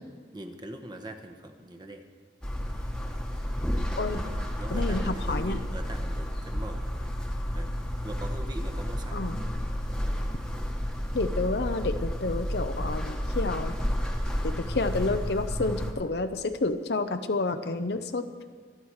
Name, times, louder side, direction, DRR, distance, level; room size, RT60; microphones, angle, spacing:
voice 1, 0.3-2.0 4.6-6.9 7.5-7.7 8.0-9.2 17.8-18.0, right 1 dB, 25° right, 5 dB, 1.2 m, -41 dB
sound 1, 2.4-15.9, equal, 5° left, 1.3 m, -31 dB
voice 2, 4.7-5.6 9.1-9.4 11.1-13.8 14.4-18.3, left 3 dB, 65° left, 8 dB, 0.7 m, -29 dB
25.5 x 8.9 x 4.8 m, 1.5 s
head